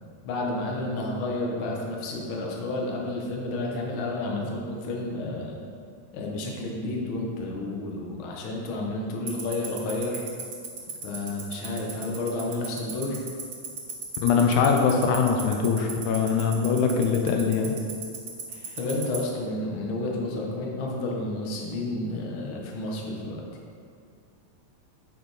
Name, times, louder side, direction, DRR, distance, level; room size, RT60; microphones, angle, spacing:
voice 1, 0.2-5.6 6.1-10.2 11.0-13.2 18.8-23.4, left 2 dB, 65° left, -1 dB, 1.3 m, -31 dB
Tick-tock, 9.3-19.2, right 8 dB, 65° right, 1.0 m, -33 dB
voice 2, 14.2-17.8, left 5 dB, 80° left, 2 dB, 2.0 m, -22 dB
10.0 x 5.2 x 4.1 m, 2.2 s
omnidirectional pair, 3.6 m